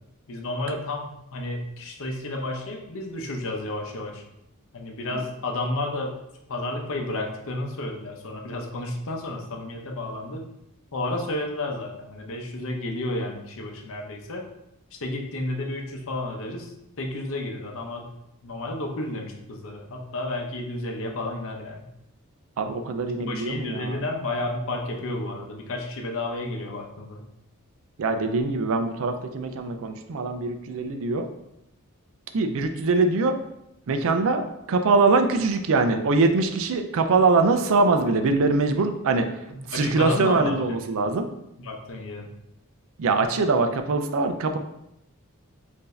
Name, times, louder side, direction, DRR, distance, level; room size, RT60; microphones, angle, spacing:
voice 1, 0.3-4.2 4.7-6.1 6.5-10.5 10.9-14.5 15.0-18.1 18.4-21.9 23.2-27.2 39.5-40.8 41.6-42.3, left 2 dB, 65° left, 2 dB, 0.7 m, -31 dB
voice 2, 22.6-24.0 28.0-31.3 32.3-33.4 33.9-39.3 39.7-41.3 43.0-44.6, right 3 dB, 65° right, 7 dB, 0.4 m, -23 dB
4.5 x 2.6 x 3.2 m, 0.84 s
head